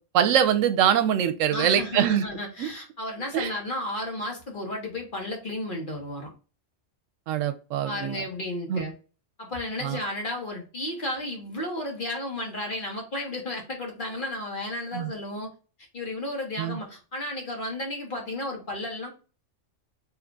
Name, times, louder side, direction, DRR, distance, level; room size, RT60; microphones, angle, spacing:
voice 1, 0.1-2.2 2.6-2.7 3.3-3.5 7.3-8.2 8.7-8.8 9.8-10.0 14.9-15.1 16.6-16.8, right 9 dB, 80° right, 9 dB, 0.9 m, -23 dB
voice 2, 1.5-6.3 7.8-8.9 9.4-15.5 15.9-19.1, left 1 dB, 45° left, 1 dB, 1.1 m, -33 dB
3.8 x 2.9 x 2.2 m, 0.35 s
omnidirectional pair, 1.3 m